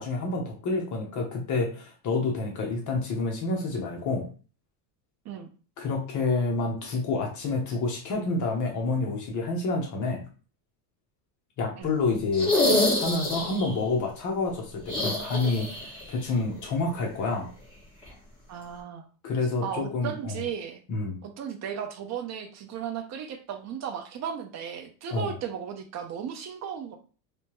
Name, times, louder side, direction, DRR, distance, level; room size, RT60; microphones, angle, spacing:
voice 1, 0.0-4.2 5.8-10.2 11.6-12.5 13.0-17.5 19.2-20.4 20.9-21.2 25.1-25.3, left 3 dB, 40° left, 1 dB, 0.9 m, -28 dB
sound 1, 12.3-13.7 14.8-16.0 16.3-16.4 18.0-18.1, left 1 dB, 10° left, 1.8 m, -26 dB
voice 2, 18.5-19.0 19.6-20.8 21.2-27.0, right 8 dB, 35° right, 6 dB, 0.6 m, -35 dB
3.4 x 2.8 x 3.0 m, 0.37 s
cardioid pair, 140°, 47 cm